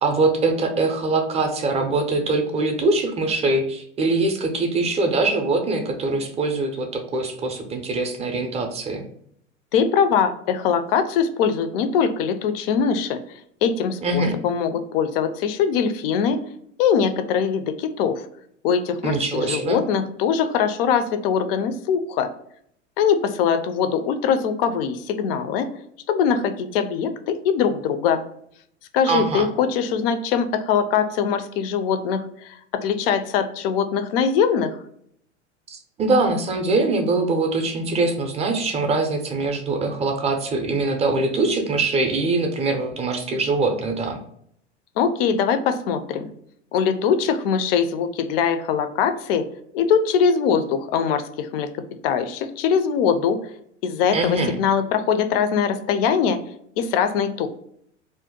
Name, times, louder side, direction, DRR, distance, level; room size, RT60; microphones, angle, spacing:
voice 1, 0.0-9.0 14.0-14.4 19.0-19.8 29.1-29.5 35.7-44.2 54.1-54.5, right 3 dB, 20° right, 4 dB, 0.5 m, -23 dB
voice 2, 9.7-13.2 13.6-16.4 16.8-18.3 18.6-22.3 23.0-25.7 26.1-28.2 28.9-34.8 45.0-46.3 46.7-49.5 49.7-51.7 52.0-53.5 53.8-56.4 56.8-57.5, left 7 dB, 55° left, 9 dB, 0.5 m, -22 dB
2.5 x 2.2 x 3.7 m, 0.69 s
figure-of-eight pair, 85°, 36 cm